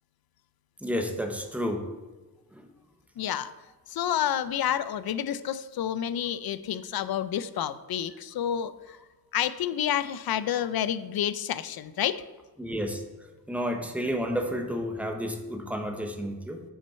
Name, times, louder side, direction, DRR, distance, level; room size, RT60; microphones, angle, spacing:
voice 1, 0.8-1.9 2.5-2.7 12.6-13.0 13.5-16.6, equal, 5° right, 4 dB, 1.0 m, -31 dB
voice 2, 3.2-3.5 3.9-9.0 9.3-12.2, left 10 dB, 75° left, 14 dB, 0.5 m, -29 dB
7.3 x 6.2 x 5.6 m, 1.2 s
wide cardioid pair, 125°, 37 cm